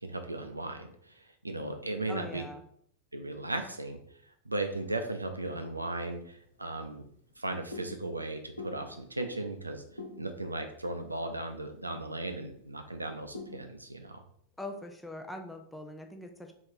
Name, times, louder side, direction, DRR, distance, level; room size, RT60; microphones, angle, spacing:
voice 1, 0.0-2.4 3.1-4.0 4.4-7.0 7.4-9.8 10.2-14.2, right 2 dB, 85° right, 6 dB, 0.5 m, -36 dB
voice 2, 2.1-2.6 14.6-16.5, left 1 dB, 5° left, 4 dB, 0.6 m, -42 dB
sound 1, 5.8-13.7, left 2 dB, 80° left, 0.8 m, -49 dB
3.5 x 3.3 x 4.4 m, 0.67 s
figure-of-eight pair, 90°, 0 cm